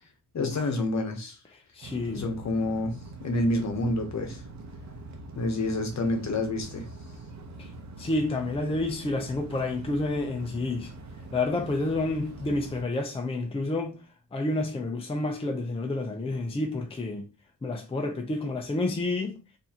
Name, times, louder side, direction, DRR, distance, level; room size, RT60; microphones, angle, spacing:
voice 1, 0.3-1.3 2.1-4.4 5.4-6.9, left 2 dB, 55° left, 0.9 m, -28 dB
voice 2, 1.8-2.3 7.6-7.7 8.0-10.9 11.3-14.0 14.3-17.3 17.6-19.4, left 2 dB, 15° left, 0.5 m, -29 dB
sound 1, 1.8-12.8, right 2 dB, 55° right, 0.8 m, -44 dB
4.5 x 2.7 x 2.8 m
wide cardioid pair, 150°, 33 cm